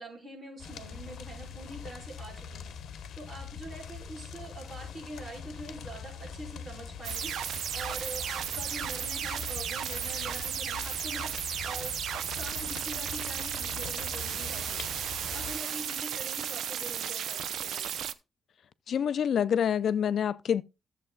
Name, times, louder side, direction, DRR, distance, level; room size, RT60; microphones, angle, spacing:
voice 1, 0.0-2.6 3.1-7.3 7.7-11.3 11.6-11.9 12.3-14.8 15.3-18.1, right 1 dB, 30° right, 4.9 m, -44 dB
sound 1, 0.6-15.5, left 6 dB, 85° left, 1.0 m, -43 dB
sound 2, 7.0-18.1, right 9 dB, 85° right, 0.6 m, -34 dB
voice 2, 18.9-20.6, left 8 dB, 65° left, 0.5 m, -27 dB
14.5 x 7.5 x 2.3 m
wide cardioid pair, 140°, 0 cm